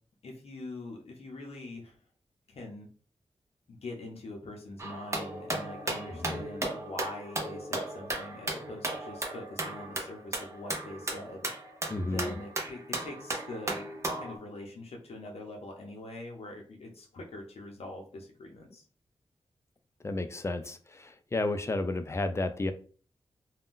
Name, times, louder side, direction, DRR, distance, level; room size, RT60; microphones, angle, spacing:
voice 1, 0.2-1.9 2.5-2.9 3.7-11.5 12.0-13.8 14.1-18.9, left 2 dB, 70° left, 1 dB, 0.6 m, -43 dB
sound 1, 4.8-14.4, right 2 dB, 25° right, 0.6 m, -36 dB
voice 2, 11.9-12.3 20.0-22.7, left 2 dB, 25° left, 9 dB, 0.3 m, -32 dB
2.5 x 2.2 x 3.5 m, 0.41 s
wide cardioid pair, 100°, 11 cm